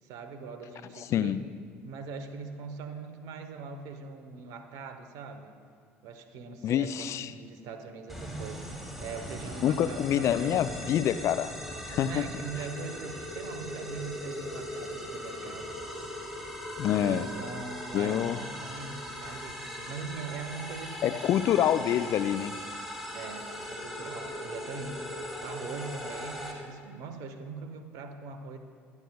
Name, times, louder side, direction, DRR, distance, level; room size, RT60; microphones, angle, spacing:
voice 1, 0.0-1.4 1.8-5.6 6.0-10.9 11.9-15.7 16.9-21.7 23.1-25.1 25.4-28.6, right 4 dB, 60° right, 8 dB, 1.1 m, -42 dB
voice 2, 1.0-1.4 6.6-7.3 9.6-11.5 11.9-12.3 16.8-17.3 17.9-18.4 21.0-22.5, left 10 dB, 45° left, 13 dB, 0.4 m, -26 dB
sound 1, 8.1-26.5, equal, 5° right, 3.0 m, -39 dB
22.5 x 11.0 x 2.3 m, 2.1 s
figure-of-eight pair, 60°, 7 cm